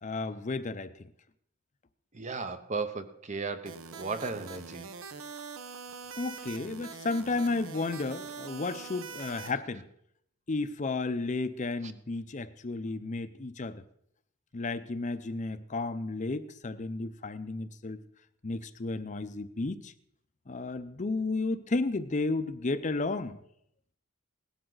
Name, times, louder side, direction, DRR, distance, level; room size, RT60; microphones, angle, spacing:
voice 1, 0.0-0.9 6.2-9.9 10.5-13.8 14.5-18.0 18.4-19.9 20.5-23.4, left 3 dB, 35° left, 0.6 m, -33 dB
voice 2, 2.1-4.9, right 4 dB, 35° right, 0.7 m, -35 dB
sound 1, 3.7-9.5, right 5 dB, 75° right, 0.8 m, -43 dB
17.0 x 12.5 x 3.9 m
head